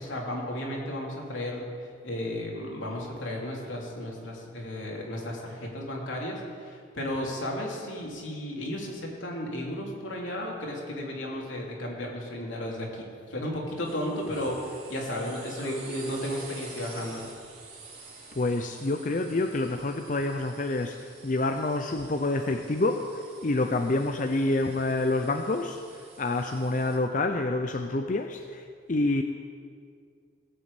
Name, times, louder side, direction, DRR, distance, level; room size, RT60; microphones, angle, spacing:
voice 1, 0.0-1.7 2.0-17.3, left 1 dB, 85° left, -2 dB, 3.1 m, -34 dB
sound 1, 13.8-27.0, right 3 dB, 35° right, 3.6 m, -48 dB
voice 2, 18.4-25.8 26.2-28.6 28.9-29.2, left 2 dB, 40° left, 6 dB, 0.6 m, -27 dB
19.0 x 6.4 x 8.3 m, 2.2 s
head